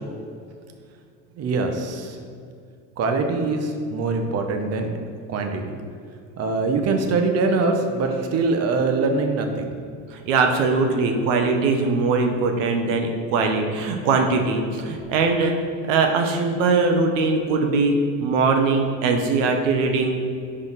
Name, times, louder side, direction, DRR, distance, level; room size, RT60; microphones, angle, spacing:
voice 1, 1.4-2.2 3.0-4.9 5.3-5.7 6.4-9.7, right 3 dB, 40° right, 4 dB, 0.9 m, -23 dB
voice 2, 10.1-15.5 15.8-20.1, right 4 dB, 85° right, 4 dB, 0.8 m, -21 dB
5.2 x 4.2 x 5.6 m, 2.3 s
supercardioid pair, 100°, 37 cm